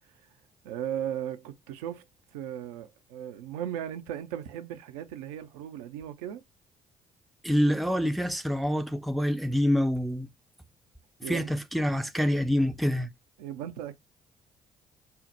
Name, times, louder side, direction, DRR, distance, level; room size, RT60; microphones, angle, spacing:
voice 1, 0.6-2.0 2.3-6.4 11.2-11.5 13.4-13.9, right 10 dB, 75° right, 0.5 m, -36 dB
voice 2, 7.4-10.3 11.3-13.1, equal, ahead, 0.5 m, -26 dB
5.6 x 2.1 x 2.5 m
hypercardioid pair, 45°, 19 cm